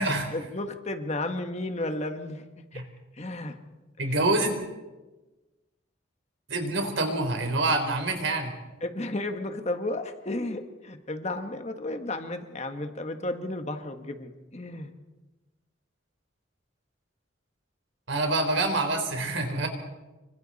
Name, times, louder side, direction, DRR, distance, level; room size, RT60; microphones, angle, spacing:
voice 1, 0.0-2.4 2.7-2.8 3.2-3.5 4.1-4.2 8.8-14.9, left 2 dB, 35° left, 6 dB, 1.5 m, -33 dB
voice 2, 4.0-4.6 6.5-8.5 18.1-19.7, right 2 dB, 70° right, 5 dB, 3.8 m, -26 dB
27.5 x 24.5 x 4.2 m, 1.2 s
head